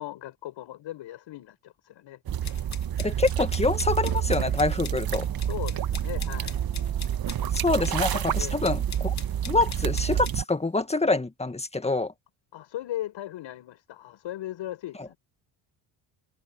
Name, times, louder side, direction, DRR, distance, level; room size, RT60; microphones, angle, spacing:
voice 1, 0.0-2.7 5.4-6.6 8.4-8.6 12.5-15.2, left 13 dB, 65° left, 4.6 m, -38 dB
sound 1, 2.3-10.4, right 10 dB, 45° right, 1.6 m, -28 dB
sound 2, 2.4-10.4, left 6 dB, 35° left, 2.5 m, -42 dB
voice 2, 3.0-5.3 7.5-9.1 9.5-12.1, left 3 dB, 15° left, 1.9 m, -26 dB
supercardioid pair, 80°, 49 cm